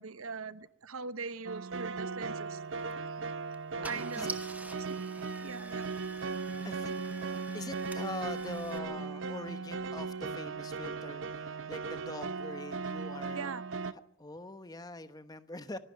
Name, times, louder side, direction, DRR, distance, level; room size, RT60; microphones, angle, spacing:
voice 1, 0.0-2.6 3.0-3.2 3.8-4.4 4.8-5.0 5.4-5.9 13.3-13.6, right 4 dB, 90° right, 1.0 m, -41 dB
sound 1, 1.4-13.9, right 4 dB, 60° right, 0.7 m, -38 dB
Car / Engine starting, 2.7-2.9 3.5-3.6 3.8-8.8, right 2 dB, 10° right, 1.1 m, -47 dB
voice 2, 3.7-4.3 5.2-5.3 6.6-13.5 14.2-15.8, left 2 dB, 20° left, 1.0 m, -44 dB
25.0 x 12.0 x 9.3 m
head